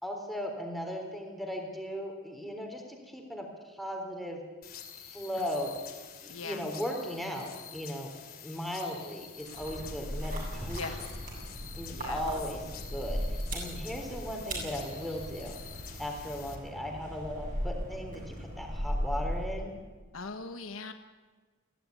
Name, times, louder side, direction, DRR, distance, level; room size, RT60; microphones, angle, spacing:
voice 1, 0.0-4.4 5.1-5.7 6.2-8.1 8.4-11.1 11.8-15.6 16.0-19.7, equal, ahead, 1 dB, 3.6 m, -37 dB
sound 1, 4.6-16.5, left 8 dB, 45° left, 2.9 m, -48 dB
voice 2, 6.3-6.6 10.8-11.0 11.9-12.2 20.1-20.9, left 4 dB, 80° left, 8 dB, 1.3 m, -40 dB
sound 2, 9.4-19.8, equal, 40° right, 7.7 m, -37 dB
22.0 x 16.0 x 9.5 m, 1.4 s
head